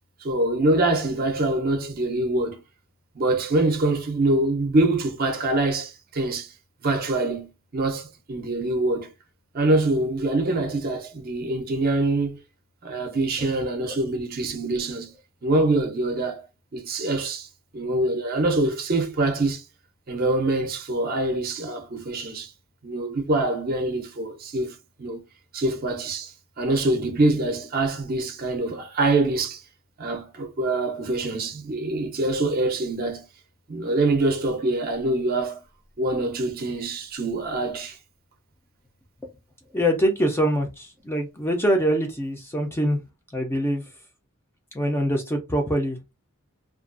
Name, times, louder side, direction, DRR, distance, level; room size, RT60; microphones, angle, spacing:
voice 1, 0.2-2.6 3.2-6.5 6.8-9.1 9.5-12.4 12.8-15.1 15.4-16.5 16.7-17.5 17.7-19.7 20.1-22.5 22.8-25.2 25.5-29.6 30.0-33.2 33.7-35.6 36.0-38.0, right 2 dB, 40° right, 0.5 m, -24 dB
voice 2, 39.7-43.0 43.3-43.8 44.7-46.0, equal, 10° left, 0.4 m, -24 dB
2.4 x 2.3 x 2.4 m
head